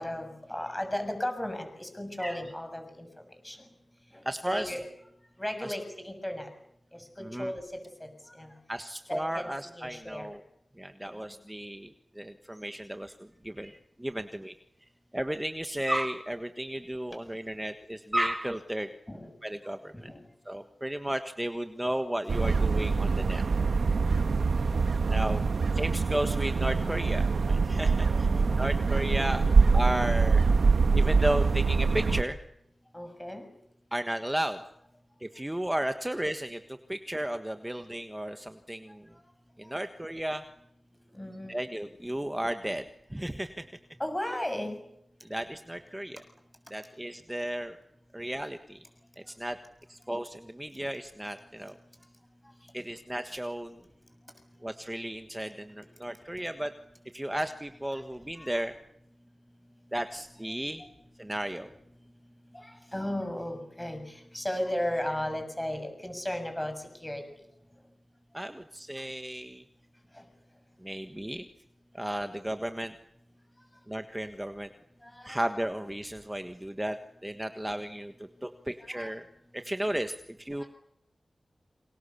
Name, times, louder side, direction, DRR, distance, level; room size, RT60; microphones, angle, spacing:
voice 1, 0.0-3.1 3.4-3.6 4.1-4.9 5.4-6.5 7.2-7.6 8.0-8.1 8.3-8.5 9.1-9.5 9.8-10.3 11.0-11.2 19.1-19.3 20.0-20.2 28.1-28.5 32.9-33.5 41.1-41.6 44.0-44.8 58.4-58.5 62.5-66.7 67.0-67.2 75.1-75.4 78.9-79.1 80.6-80.7, left 1 dB, 10° left, 7 dB, 7.0 m, -35 dB
voice 2, 4.2-4.7 5.6-5.8 7.2-7.5 8.7-10.4 10.8-14.5 15.1-18.9 19.4-20.1 20.4-23.4 25.1-25.4 25.7-28.3 28.6-29.4 29.7-30.4 30.9-32.4 33.9-34.6 35.2-39.1 39.6-40.4 41.5-42.8 43.1-43.6 45.2-46.2 46.7-47.8 48.1-48.8 49.2-49.6 49.9-51.8 52.7-53.8 54.6-56.7 57.1-58.7 59.9-60.8 61.2-61.7 68.3-69.6 70.8-71.5 71.9-72.9 73.9-74.7 75.2-79.2 79.5-80.6, right 1 dB, 10° right, 7 dB, 1.4 m, -34 dB
sound 1, 22.3-32.2, right 4 dB, 85° right, 1.5 m, -24 dB
29.5 x 26.5 x 7.0 m, 0.78 s
wide cardioid pair, 100°, 0 cm